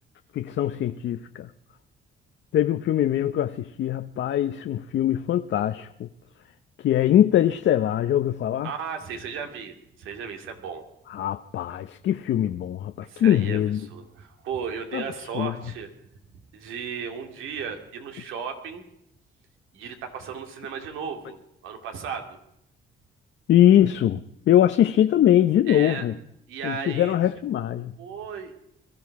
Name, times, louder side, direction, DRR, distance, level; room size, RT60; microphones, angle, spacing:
voice 1, 0.3-1.5 2.5-6.1 6.8-8.7 11.1-13.9 14.9-15.0 15.3-15.5 23.5-26.2 26.6-27.9, left 11 dB, 65° left, 0.7 m, -22 dB
voice 2, 8.6-10.8 13.0-15.9 16.5-18.8 19.7-21.4 21.6-22.4 25.7-26.0 26.5-27.1 28.0-28.5, right 6 dB, 90° right, 2.5 m, -35 dB
22.5 x 13.5 x 4.8 m
cardioid pair, 90°, 20 cm